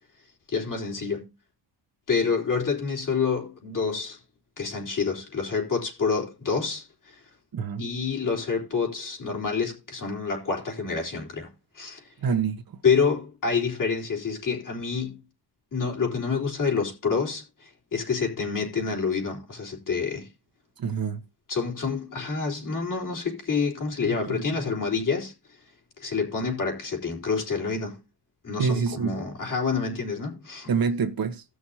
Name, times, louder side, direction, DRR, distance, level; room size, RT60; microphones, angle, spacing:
voice 1, 0.5-1.3 2.1-4.2 4.6-7.2 7.8-11.5 11.7-12.0 12.8-15.2 15.7-20.3 21.5-25.3 26.0-28.0 28.4-30.7, left 5 dB, 50° left, 4.0 m, -28 dB
voice 2, 7.5-7.8 12.2-12.6 20.8-21.2 24.0-24.6 28.6-29.2 30.7-31.4, right 5 dB, 55° right, 1.3 m, -27 dB
17.5 x 6.3 x 2.9 m
cardioid pair, 125°, 41 cm